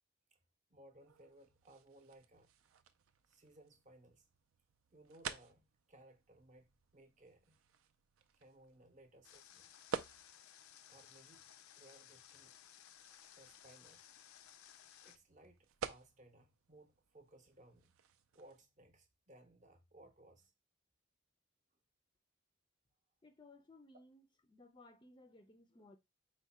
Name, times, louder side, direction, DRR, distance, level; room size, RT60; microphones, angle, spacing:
voice 1, 0.7-2.5 3.3-4.3 4.9-7.6 8.3-9.8 10.9-11.5 11.8-12.6 13.4-14.0 15.0-17.9 18.3-20.5, right 1 dB, 35° right, 0.7 m, -62 dB
newspapers large hard, 1.0-18.7, right 7 dB, 80° right, 0.4 m, -52 dB
Water, 9.2-15.2, left 10 dB, 90° left, 0.4 m, -60 dB
voice 2, 23.2-26.0, left 2 dB, 20° left, 0.4 m, -61 dB
4.6 x 2.1 x 4.1 m
head